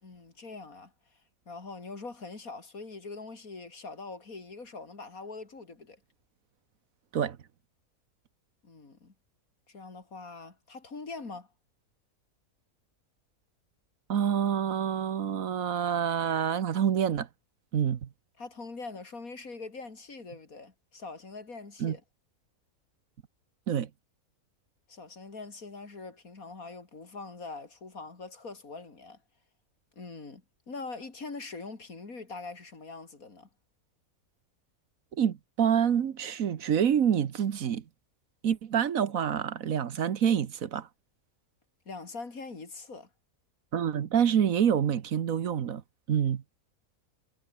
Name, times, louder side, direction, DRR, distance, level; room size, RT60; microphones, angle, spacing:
voice 1, 0.0-0.9 1.5-6.0 8.6-9.1 9.7-11.5 18.4-22.0 24.9-29.2 30.0-33.5 41.9-43.1, left 3 dB, 70° left, 3.7 m, -43 dB
voice 2, 14.1-17.3 17.7-18.1 21.8-22.0 23.7-23.9 35.2-37.8 38.4-40.9 43.7-45.8 46.1-46.4, right 8 dB, 65° right, 1.5 m, -27 dB
omnidirectional pair, 1.6 m